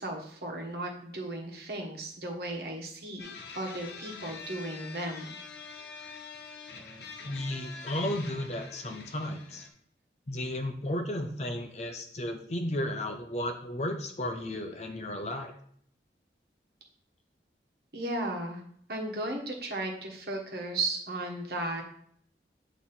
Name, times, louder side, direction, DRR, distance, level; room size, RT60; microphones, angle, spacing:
voice 1, 0.0-3.3 3.5-5.3 17.9-18.6 18.9-21.8, right 2 dB, 60° right, 0 dB, 1.3 m, -35 dB
sound 1, 3.2-9.7, left 4 dB, 75° left, 0.9 m, -45 dB
voice 2, 7.2-9.7 10.3-15.5, left 1 dB, 40° left, 6 dB, 0.6 m, -34 dB
8.4 x 3.0 x 4.2 m, 0.63 s
head